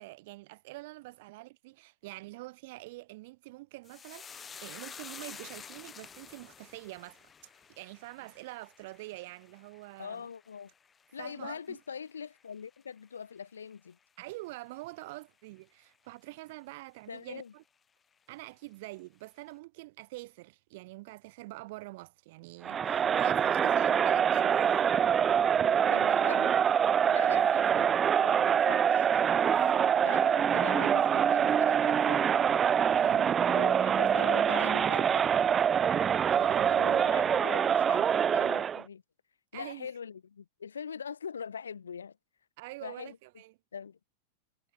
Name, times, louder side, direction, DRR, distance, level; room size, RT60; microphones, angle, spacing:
voice 1, 0.0-10.2 11.2-11.8 14.2-17.6 18.3-24.8 27.2-27.5 29.5-30.0 32.9-33.4 36.3-37.2 39.5-39.9 42.6-43.5, right 21 dB, 50° right, 3.2 m, -45 dB
sound 1, 3.8-12.5 12.8-13.4 13.7-13.9, left 6 dB, 20° left, 7.2 m, -50 dB
voice 2, 10.0-10.7 11.1-14.0 17.1-17.5 25.7-26.6 27.1-27.9 28.2-29.1 30.0-32.3 33.5-35.3 36.7-39.0 39.5-42.2 42.8-43.2 43.7-44.0, left 6 dB, 70° left, 3.2 m, -42 dB
Crowd, 22.6-38.8, right 8 dB, 25° right, 0.3 m, -25 dB
figure-of-eight pair, 90°, 0 cm